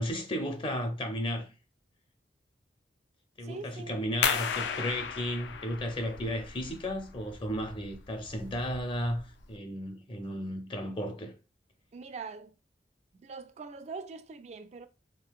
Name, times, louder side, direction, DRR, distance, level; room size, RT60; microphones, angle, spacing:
voice 1, 0.0-1.5 3.4-11.3, equal, 30° left, 0.5 m, -34 dB
voice 2, 3.4-4.1 11.9-12.5 13.1-14.9, right 4 dB, 40° right, 0.3 m, -43 dB
sound 1, 4.2-9.6, left 7 dB, 80° left, 0.4 m, -35 dB
3.7 x 2.3 x 2.3 m
head